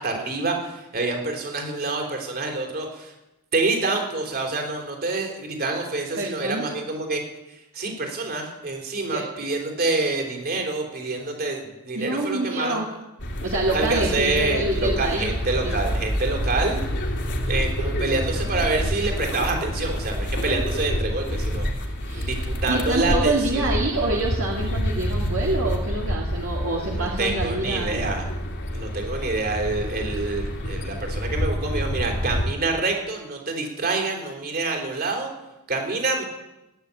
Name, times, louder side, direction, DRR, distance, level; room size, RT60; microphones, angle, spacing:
voice 1, 0.0-3.1 3.5-7.2 7.7-12.8 13.7-16.8 17.5-21.7 22.1-23.7 26.8-28.3 28.7-35.3 35.7-36.2, right 3 dB, 45° right, 3 dB, 3.8 m, -27 dB
voice 2, 6.2-6.7 9.1-9.2 11.9-12.9 13.4-15.3 15.6-15.8 22.0-22.3 22.7-28.1, right 2 dB, 65° right, -2 dB, 2.3 m, -26 dB
sound 1, 13.2-32.4, equal, 55° left, 2.8 m, -28 dB
16.5 x 10.0 x 8.5 m, 0.96 s
head